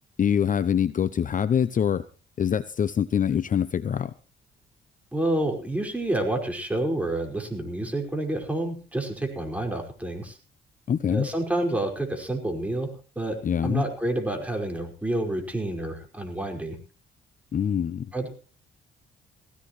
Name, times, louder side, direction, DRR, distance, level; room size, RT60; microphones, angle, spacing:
voice 1, 0.2-2.0 2.4-4.1 10.9-11.3 13.4-13.8 17.5-18.1, left 8 dB, 40° left, 0.6 m, -24 dB
voice 2, 5.1-10.4 11.1-12.9 13.2-16.8 18.1-18.3, right 1 dB, 5° right, 5.1 m, -29 dB
19.0 x 16.5 x 3.1 m
cardioid pair, 90°, 20 cm